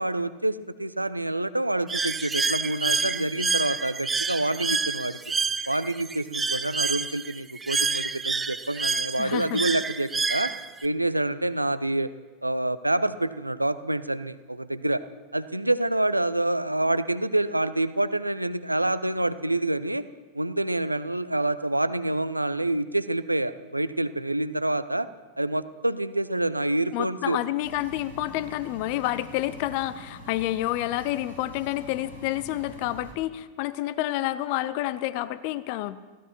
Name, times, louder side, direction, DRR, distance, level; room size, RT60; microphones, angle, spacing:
voice 1, 0.0-5.2 5.7-10.5 10.8-12.1 12.4-15.0 15.3-20.0 20.3-25.1 25.4-27.4, right 1 dB, 85° right, 13 dB, 0.6 m, -27 dB
Bird, 1.9-10.9, right 4 dB, 15° right, 0.6 m, -28 dB
voice 2, 9.2-9.6 26.9-36.0, left 15 dB, 45° left, 17 dB, 0.7 m, -29 dB
sound 1, 27.6-33.1, equal, 85° left, 4.4 m, -45 dB
30.0 x 16.0 x 3.0 m, 1.3 s
figure-of-eight pair, 90°, 0 cm